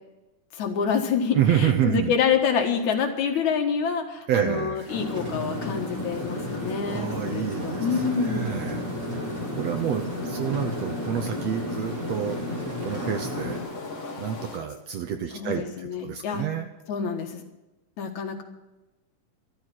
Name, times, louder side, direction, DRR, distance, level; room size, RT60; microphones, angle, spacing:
voice 1, 0.5-8.6 15.3-16.5 16.9-17.4 18.0-18.4, left 6 dB, 65° left, 4 dB, 2.8 m, -27 dB
voice 2, 1.3-2.1 4.3-4.9 6.9-7.9 8.2-8.8 9.5-12.4 12.8-13.6 14.2-16.7, right 9 dB, 65° right, 6 dB, 1.8 m, -28 dB
sound 1, 4.7-14.6, left 3 dB, 45° left, 3.2 m, -44 dB
sound 2, 4.9-13.6, left 1 dB, 20° right, 4.4 m, -32 dB
13.5 x 13.0 x 6.0 m, 1.0 s
omnidirectional pair, 3.8 m